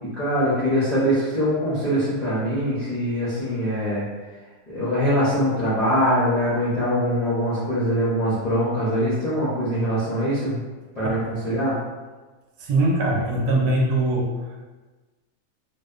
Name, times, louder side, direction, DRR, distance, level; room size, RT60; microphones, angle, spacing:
voice 1, 0.0-4.0 4.7-10.6 10.9-11.8, equal, 55° left, -11 dB, 0.4 m, -23 dB
voice 2, 12.6-14.5, right 1 dB, 90° right, -2 dB, 1.1 m, -22 dB
2.6 x 2.1 x 2.3 m, 1.3 s
omnidirectional pair, 1.6 m